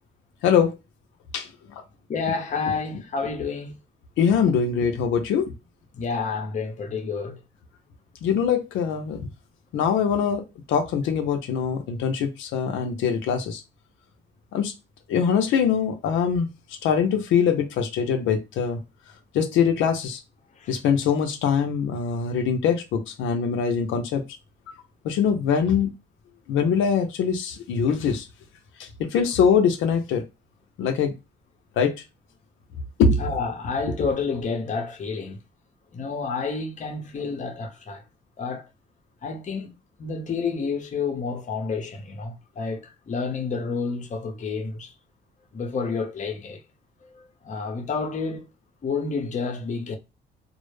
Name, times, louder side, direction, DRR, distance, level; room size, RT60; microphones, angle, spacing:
voice 1, 0.4-0.7 1.3-1.8 4.2-5.5 8.2-9.2 9.7-13.6 14.5-14.7 15.1-16.5 16.8-18.8 19.3-20.2 20.7-24.2 25.0-25.9 26.5-28.3 28.8-30.2 30.8-31.1 31.8-31.9 33.0-33.3, left 6 dB, 80° left, 0.5 m, -23 dB
voice 2, 2.1-3.8 5.9-7.4 20.6-20.7 33.2-35.4 35.9-38.0 38.4-38.7 39.2-39.7 40.0-44.9 45.5-46.6 47.0-48.5 48.8-50.0, left 4 dB, 40° left, 0.6 m, -29 dB
2.0 x 2.0 x 3.0 m
cardioid pair, 90°, 20 cm